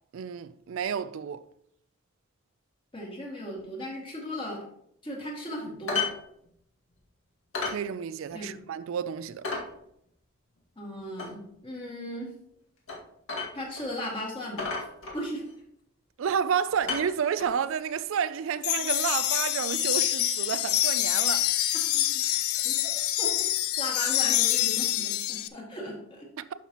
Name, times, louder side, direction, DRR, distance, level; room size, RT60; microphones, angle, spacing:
voice 1, 0.1-1.4 7.7-9.5 16.2-21.5 26.4-26.5, right 7 dB, 70° right, 0.4 m, -30 dB
voice 2, 2.9-4.6 5.0-6.1 8.3-8.6 10.8-12.3 13.5-14.7 15.1-15.5 21.9-22.0 22.6-22.8 23.2-23.3 23.8-26.3, left 1 dB, 25° left, 2.0 m, -36 dB
sound 1, 5.9-6.2 6.5-6.6 6.9-7.0 7.5-7.8 8.3-8.4 8.8-8.9 9.4-9.7 11.2-11.3 12.9-13.0 13.3-13.8 14.1-14.2 14.6-15.5 16.2-16.5 16.8-17.6 18.6-18.7, left 4 dB, 70° left, 2.0 m, -33 dB
sound 2, 18.6-25.5, left 13 dB, 90° left, 0.5 m, -26 dB
11.5 x 5.8 x 3.0 m
head